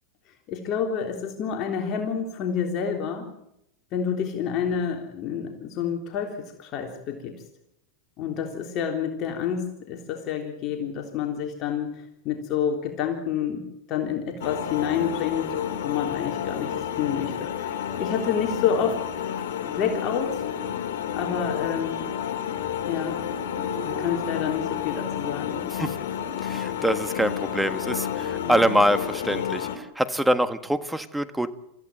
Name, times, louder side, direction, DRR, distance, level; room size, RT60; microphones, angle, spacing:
voice 1, 0.5-3.3 3.9-7.4 8.2-20.4 21.1-22.1 22.9-23.3 23.8-25.7 28.4-28.7, left 7 dB, 45° left, 3 dB, 3.5 m, -29 dB
sound 1, 14.4-29.8, left 9 dB, 70° left, 2.8 m, -30 dB
Dog / Siren, 19.9-20.0 20.4-21.9 22.1-24.2, right 6 dB, 60° right, 4.3 m, -43 dB
voice 2, 26.4-31.5, equal, 5° right, 10 dB, 1.6 m, -25 dB
26.5 x 15.0 x 9.2 m, 0.80 s
hypercardioid pair, 115°, 0 cm